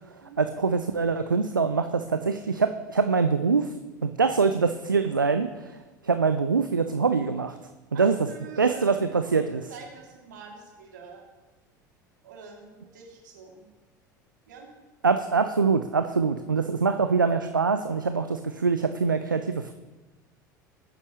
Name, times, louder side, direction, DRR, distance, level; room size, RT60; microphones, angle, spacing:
voice 1, 0.4-3.7 4.0-7.6 7.9-8.3 8.6-9.7 15.0-19.7, right 5 dB, 85° right, 9 dB, 0.5 m, -24 dB
voice 2, 7.9-9.3 9.7-11.2 12.2-13.7 14.5-14.7 18.4-18.5, right 5 dB, 65° right, 0 dB, 2.5 m, -45 dB
20.0 x 9.7 x 3.0 m, 1.2 s
figure-of-eight pair, 70°, 11 cm